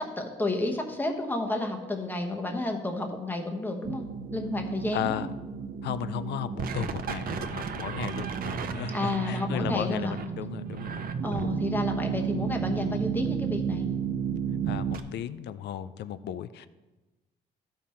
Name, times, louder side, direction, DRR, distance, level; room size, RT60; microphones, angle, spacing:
voice 1, 0.0-5.2 8.9-10.2 11.2-13.9, left 2 dB, 10° left, 3 dB, 1.0 m, -31 dB
sound 1, 3.8-15.0, right 7 dB, 55° right, 0.7 m, -32 dB
voice 2, 4.9-5.3 5.8-11.2 14.7-16.7, left 11 dB, 75° left, 14 dB, 0.4 m, -35 dB
13.0 x 5.6 x 4.3 m, 1.1 s
cardioid pair, 120°, 18 cm